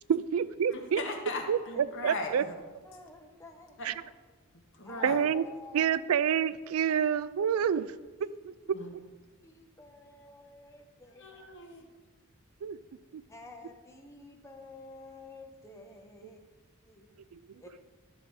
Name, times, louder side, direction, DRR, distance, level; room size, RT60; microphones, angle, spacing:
voice 1, 0.1-1.0 1.5-2.5 3.8-3.9 5.0-5.5 5.7-7.9 8.2-8.3 12.6-12.8 13.1-13.2 17.3-17.4, right 8 dB, 75° right, 17 dB, 0.4 m, -28 dB
voice 2, 0.7-2.5 3.8-3.9 4.8-5.3 8.7-8.9 11.2-11.9, left 2 dB, 60° left, 2 dB, 1.7 m, -38 dB
voice 3, 2.8-3.9 4.8-6.0 8.2-8.3 8.6-8.7 9.4-11.2 13.3-16.4 16.9-17.1 17.6-17.7, left 3 dB, 15° left, 2 dB, 1.1 m, -50 dB
12.0 x 6.7 x 4.8 m, 1.3 s
head